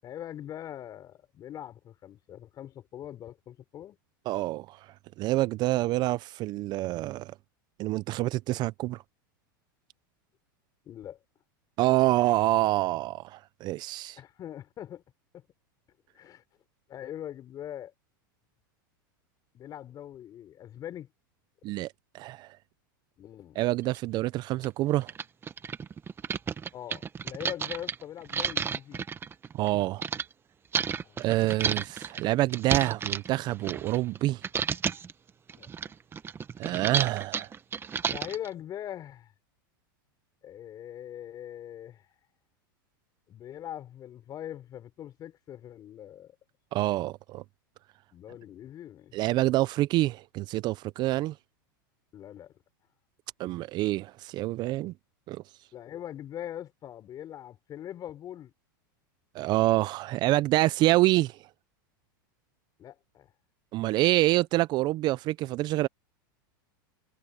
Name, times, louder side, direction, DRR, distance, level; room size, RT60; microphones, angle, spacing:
voice 1, 0.0-4.0 10.8-11.2 14.2-15.0 15.3-15.4 16.1-16.4 16.9-17.9 19.5-21.1 23.2-23.6 26.7-29.0 31.0-31.3 35.6-35.7 38.1-39.3 40.4-42.1 43.3-46.3 48.1-49.1 52.1-52.5 55.7-58.5 62.8-63.3, left 11 dB, 35° left, 5.9 m, -42 dB
voice 2, 4.3-7.3 7.8-9.0 11.8-14.2 21.6-22.6 23.6-25.1 29.5-30.1 31.2-34.4 36.6-37.5 46.7-47.4 49.1-51.3 53.4-54.9 55.3-55.4 59.3-61.5 63.7-65.9, right 17 dB, 40° right, 0.5 m, -27 dB
sound 1, 23.9-24.0 24.6-24.7 25.0-30.2 30.7-34.2 34.4-35.1 35.5-38.5, right 7 dB, 20° right, 1.4 m, -32 dB
supercardioid pair, 125°, 12 cm